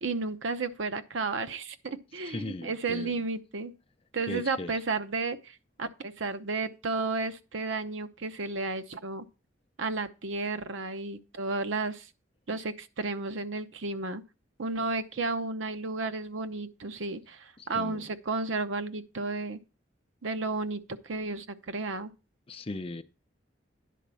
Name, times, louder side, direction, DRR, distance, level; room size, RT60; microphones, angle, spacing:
voice 1, 0.0-3.7 4.1-9.2 9.8-12.1 12.5-14.2 14.6-19.6 20.2-22.1, right 3 dB, 75° right, 0.8 m, -33 dB
voice 2, 2.2-3.1 4.3-4.8 17.6-18.1 22.5-23.0, left 2 dB, 30° left, 0.5 m, -38 dB
10.0 x 4.1 x 6.8 m
head